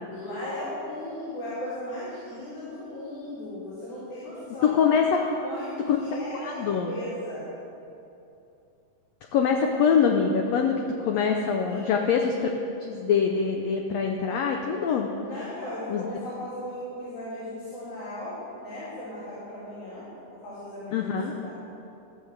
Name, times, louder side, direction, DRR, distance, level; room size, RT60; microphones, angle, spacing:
voice 1, 0.1-4.8 5.2-7.4 11.7-11.8 15.2-20.0 20.4-21.5, left 1 dB, 60° left, -12 dB, 4.6 m, -37 dB
voice 2, 4.6-5.2 5.9-6.0 6.4-6.9 9.3-10.8 11.1-12.5 12.9-15.1 15.9-16.0 20.9-21.3, left 6 dB, 85° left, 3 dB, 1.4 m, -24 dB
14.5 x 5.5 x 7.8 m, 2.8 s
omnidirectional pair, 3.9 m